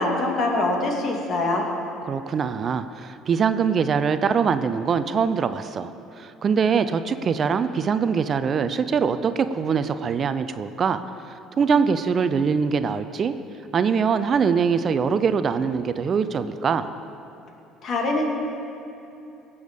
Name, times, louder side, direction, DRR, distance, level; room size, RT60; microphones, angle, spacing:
voice 1, 0.0-1.7 17.8-18.2, left 2 dB, 50° left, 1 dB, 2.2 m, -23 dB
voice 2, 2.0-13.3 13.7-16.9, right 6 dB, 45° right, 11 dB, 0.6 m, -23 dB
17.5 x 7.1 x 5.2 m, 2.9 s
hypercardioid pair, 65°, 0 cm